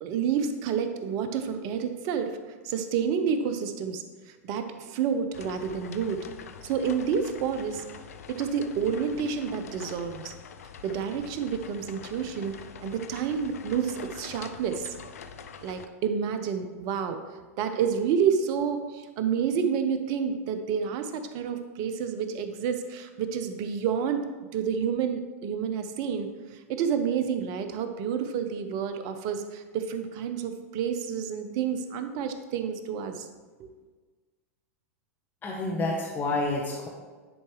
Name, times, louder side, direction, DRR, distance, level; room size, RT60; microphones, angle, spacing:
voice 1, 0.0-2.4 2.6-6.3 6.6-7.8 8.3-10.3 10.8-12.5 12.8-14.9 15.6-33.3 33.6-33.7, right 7 dB, 50° right, 8 dB, 0.7 m, -29 dB
sound 1, 5.3-15.9, left 7 dB, 75° left, 0.5 m, -45 dB
voice 2, 35.4-36.9, left 2 dB, 25° left, -1 dB, 1.0 m, -29 dB
10.0 x 4.6 x 3.2 m, 1.4 s
hypercardioid pair, 95°, 8 cm